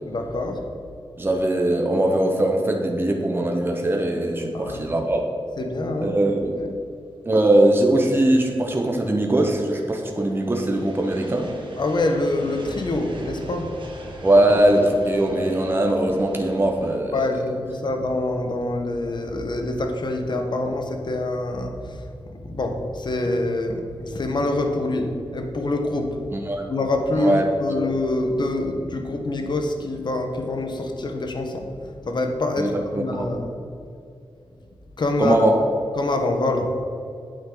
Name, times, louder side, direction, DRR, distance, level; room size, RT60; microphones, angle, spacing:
voice 1, 0.1-0.6 4.5-4.8 5.6-6.1 6.6-6.7 11.8-13.8 17.1-26.2 26.7-33.6 35.0-35.4 36.0-36.8, left 2 dB, 55° left, 4 dB, 1.2 m, -25 dB
voice 2, 1.2-5.2 6.0-6.6 7.2-11.5 14.2-17.1 26.3-26.7 27.1-27.8 32.6-33.3 35.2-35.6, right 1 dB, 25° right, 2 dB, 1.1 m, -21 dB
sound 1, 6.1-17.0, right 1 dB, 60° right, 1.7 m, -43 dB
8.8 x 8.6 x 4.0 m, 2.6 s
wide cardioid pair, 80°, 9 cm